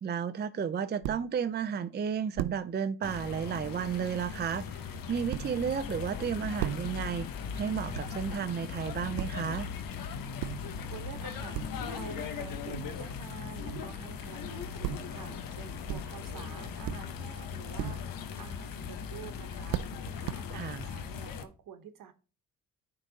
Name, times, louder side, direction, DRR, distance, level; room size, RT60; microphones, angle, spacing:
voice 1, 0.0-7.3 7.5-9.7 20.5-20.8, right 7 dB, 30° right, 0.5 m, -33 dB
sound 1, 1.0-1.4 2.4-2.8 4.9-5.8 6.6-7.1 7.9-8.4 9.1-9.5 10.4-10.9 11.5-12.0 12.7-13.2 13.6-14.1 14.8-15.3 15.9-16.3 16.8-17.3 17.7-18.2 18.8-19.0 19.7-20.4, right 13 dB, 85° right, 0.5 m, -38 dB
sound 2, 3.0-21.4, left 6 dB, 75° left, 1.0 m, -39 dB
voice 2, 10.7-22.1, right 8 dB, 70° right, 1.1 m, -49 dB
9.8 x 3.9 x 4.0 m
cardioid pair, 70°, 34 cm